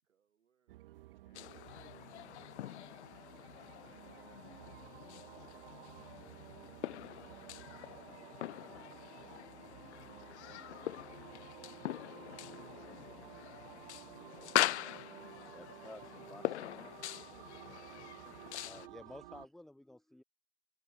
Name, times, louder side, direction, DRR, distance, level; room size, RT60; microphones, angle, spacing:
voice 1, 0.0-1.5 1.8-2.1 2.7-4.3 20.1-20.3, right 8 dB, 75° right, 7.5 m, -76 dB
sound 1, 0.7-19.5, right 17 dB, 45° right, 1.9 m, -54 dB
voice 2, 1.2-1.9 3.7-3.8 5.1-6.1 8.4-15.0 17.8-18.5 19.0-19.3, left 39 dB, 35° left, 6.4 m, -73 dB
sound 2, 1.3-18.9, left 13 dB, 65° left, 0.5 m, -42 dB
voice 3, 15.5-16.0 16.3-16.9 18.4-20.2, left 1 dB, ahead, 0.8 m, -53 dB
hypercardioid pair, 135°, 37 cm